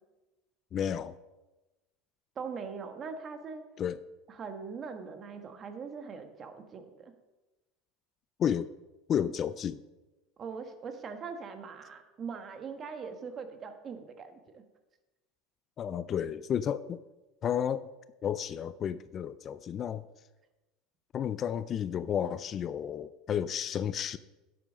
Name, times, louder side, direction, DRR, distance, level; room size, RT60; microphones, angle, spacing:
voice 1, 0.7-1.1 3.8-4.0 8.4-8.7 9.1-9.8 15.8-17.0 17.4-17.9 18.2-20.1 21.1-24.2, left 9 dB, 40° left, 15 dB, 0.4 m, -32 dB
voice 2, 2.3-3.6 4.3-7.1 10.4-14.6, right 5 dB, 35° right, 7 dB, 1.4 m, -41 dB
11.0 x 7.8 x 5.2 m, 1.1 s
supercardioid pair, 110°, 0 cm